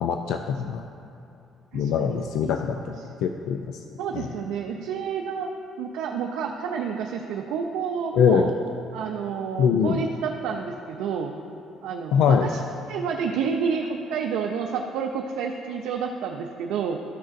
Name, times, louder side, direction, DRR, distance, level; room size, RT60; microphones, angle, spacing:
voice 1, 0.0-0.8 1.7-3.8 4.1-4.3 8.2-8.5 9.6-10.0 12.1-12.5, left 7 dB, 70° left, 5 dB, 0.3 m, -23 dB
voice 2, 1.7-2.7 4.0-5.5 5.8-8.5 8.9-11.4 11.8-12.6 12.9-17.0, right 6 dB, 90° right, 2 dB, 0.4 m, -29 dB
13.5 x 6.3 x 2.6 m, 2.7 s
cardioid pair, 165°, 0 cm